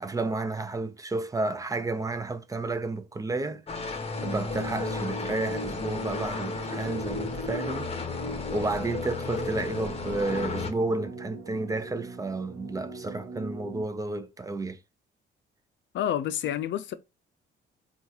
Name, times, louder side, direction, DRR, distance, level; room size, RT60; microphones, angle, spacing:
voice 1, 0.0-3.6 4.2-7.9 8.5-14.8, right 2 dB, 15° right, 0.4 m, -31 dB
sound 1, 3.7-10.7, left 4 dB, 30° left, 0.7 m, -33 dB
sound 2, 4.1-13.8, right 2 dB, 85° right, 0.8 m, -41 dB
voice 2, 15.9-16.9, left 10 dB, 70° left, 0.5 m, -29 dB
3.8 x 2.4 x 2.7 m
cardioid pair, 90°, 20 cm